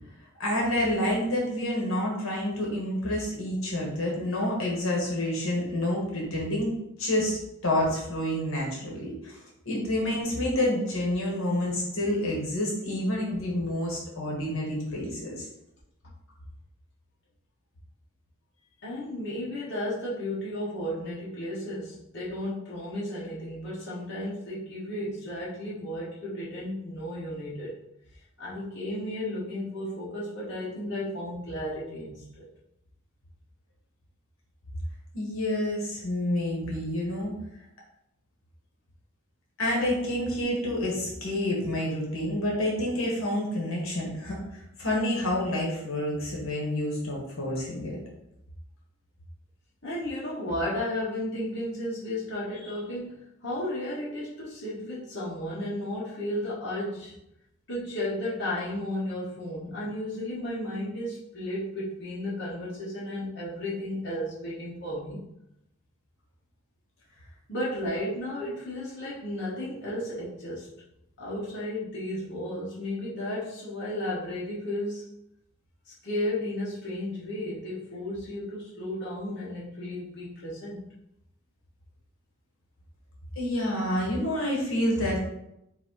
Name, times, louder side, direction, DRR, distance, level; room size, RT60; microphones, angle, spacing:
voice 1, 0.4-9.4 9.6-15.5 35.1-37.3 39.6-48.0 83.4-85.2, left 1 dB, 75° left, -3 dB, 1.3 m, -28 dB
voice 2, 18.8-27.7 28.4-32.5 49.8-57.1 57.7-65.2 67.5-70.7 71.2-75.1 75.9-80.8, left 1 dB, 50° left, -8 dB, 1.2 m, -33 dB
4.1 x 2.7 x 4.5 m, 0.82 s
head